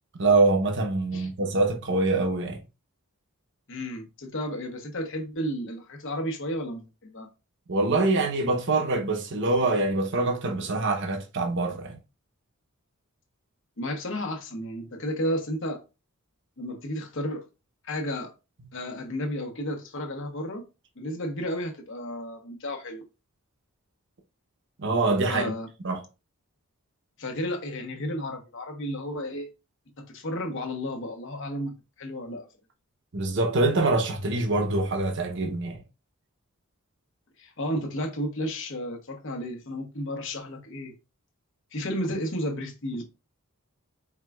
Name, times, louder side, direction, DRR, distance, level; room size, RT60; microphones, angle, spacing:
voice 1, 0.1-2.6 7.7-12.0 24.8-25.5 25.8-26.0 33.1-35.8, right 2 dB, 55° right, 0.8 m, -24 dB
voice 2, 3.7-7.3 13.8-15.8 16.6-17.4 17.8-18.3 18.7-20.6 21.0-23.0 25.3-25.7 27.2-29.5 30.0-32.5 37.4-40.9 41.7-43.0, equal, 60° left, 1.0 m, -32 dB
4.8 x 3.4 x 2.3 m
head